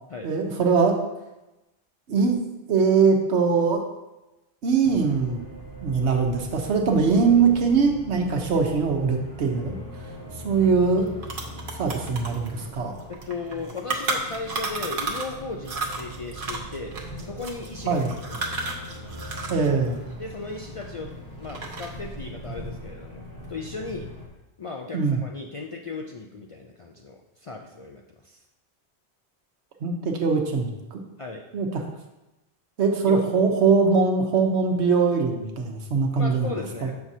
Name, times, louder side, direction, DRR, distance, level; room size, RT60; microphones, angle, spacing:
voice 1, 0.2-1.0 2.1-2.4 2.7-3.8 4.6-5.5 5.8-9.7 10.4-11.1 11.8-12.9 17.9-18.1 19.5-20.0 24.9-25.2 29.8-31.0 31.5-31.8 32.8-36.5 36.8-36.9, right 5 dB, 85° right, 3 dB, 1.2 m, -22 dB
sound 1, 4.8-24.3, right 1 dB, 20° left, 1.1 m, -40 dB
sound 2, 10.6-10.7 11.0-15.4 15.6-19.7 19.9-21.1 21.4-22.1, right 3 dB, 55° right, 1.0 m, -32 dB
voice 2, 13.1-17.0 17.2-18.5 20.2-23.2 23.5-24.1 24.6-28.4 31.2-31.5 33.1-33.4 36.1-36.9, left 3 dB, 50° left, 0 dB, 0.4 m, -36 dB
7.3 x 5.6 x 2.7 m, 0.99 s
omnidirectional pair, 1.1 m